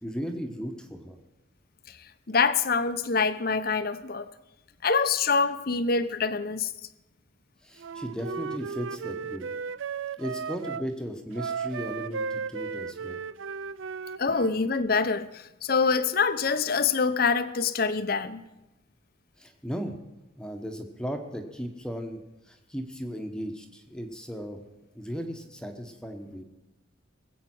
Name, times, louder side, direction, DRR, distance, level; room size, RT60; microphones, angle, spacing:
voice 1, 0.0-1.2 7.6-9.5 10.2-13.2 19.4-19.9 20.4-22.2 22.4-24.6 24.9-26.4, equal, 5° left, 1.1 m, -36 dB
voice 2, 2.3-4.3 4.8-6.7 14.2-18.4, left 5 dB, 50° left, 0.8 m, -25 dB
Wind instrument woodwind instrument, 7.8-10.9 11.3-14.6, right 5 dB, 85° right, 0.4 m, -35 dB
21.0 x 8.2 x 6.1 m
head